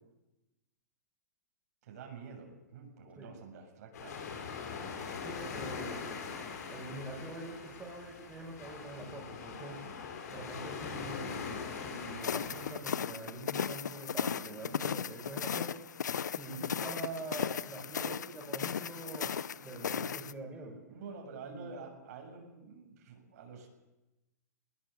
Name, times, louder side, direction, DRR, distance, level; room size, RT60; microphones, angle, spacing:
voice 1, 1.8-4.2 20.9-23.7, right 5 dB, 65° right, 2 dB, 7.3 m, -48 dB
sound 1, 3.9-12.7, left 5 dB, 70° left, 5.8 m, -42 dB
voice 2, 5.2-6.1 6.7-9.9 10.3-11.6 11.8-15.8 16.3-20.8 21.4-21.7, right 2 dB, 15° right, -1 dB, 6.2 m, -44 dB
sound 2, 12.2-20.3, left 7 dB, 85° left, 0.8 m, -36 dB
21.0 x 19.0 x 8.5 m, 1.0 s
hypercardioid pair, 125°, 9 cm